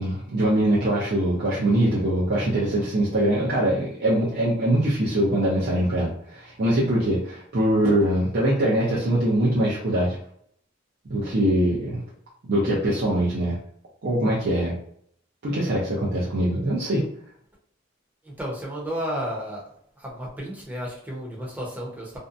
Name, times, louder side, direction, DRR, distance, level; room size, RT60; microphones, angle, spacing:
voice 1, 0.0-10.2 11.1-12.0 12.4-13.6 14.0-14.7 15.4-17.1, right 1 dB, 55° right, -6 dB, 0.6 m, -23 dB
voice 2, 18.2-19.6 20.0-22.2, equal, 10° right, -4 dB, 0.8 m, -32 dB
2.6 x 2.1 x 2.5 m, 0.65 s
head